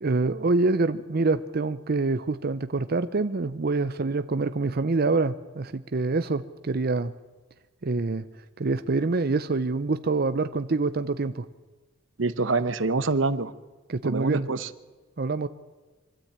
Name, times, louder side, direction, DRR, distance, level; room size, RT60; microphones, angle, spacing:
voice 1, 0.0-7.1 7.8-8.2 8.6-11.5 13.9-14.5 15.2-15.5, right 3 dB, 55° right, 11 dB, 0.7 m, -26 dB
voice 2, 12.2-13.5 14.0-14.7, right 3 dB, 85° right, 13 dB, 0.9 m, -25 dB
24.5 x 13.0 x 8.8 m, 1.3 s
head